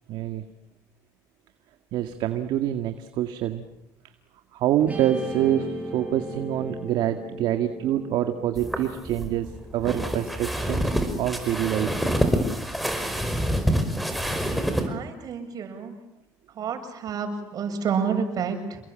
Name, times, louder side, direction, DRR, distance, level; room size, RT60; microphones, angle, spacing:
voice 1, 0.1-0.4 1.9-3.7 4.5-12.0, right 11 dB, 70° right, 8 dB, 1.9 m, -26 dB
Guitar, 4.9-11.3, right 1 dB, 20° right, 7.9 m, -38 dB
sound 1, 8.6-14.9, equal, ahead, 5.3 m, -26 dB
voice 2, 14.5-16.0 16.6-18.8, right 6 dB, 50° right, 6 dB, 7.5 m, -29 dB
28.5 x 22.0 x 8.9 m, 0.83 s
cardioid pair, 100°, 8 cm